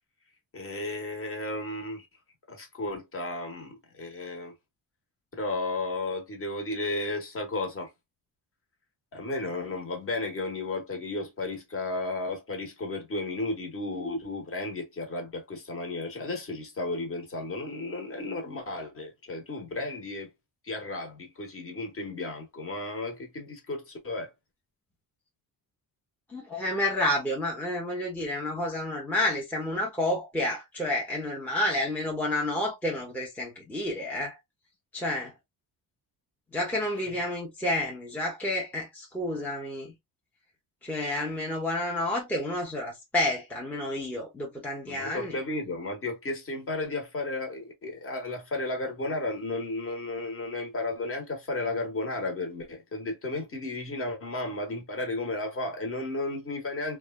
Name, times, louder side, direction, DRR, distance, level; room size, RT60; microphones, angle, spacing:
voice 1, 0.5-2.1 2.5-4.5 5.3-7.9 9.1-20.3 20.6-24.3 44.8-57.0, left 2 dB, 35° left, 1.1 m, -33 dB
voice 2, 26.3-34.4 34.9-35.3 36.5-39.9 40.8-45.4, left 1 dB, 5° left, 0.6 m, -30 dB
3.1 x 2.2 x 2.2 m
cardioid pair, 165°, 38 cm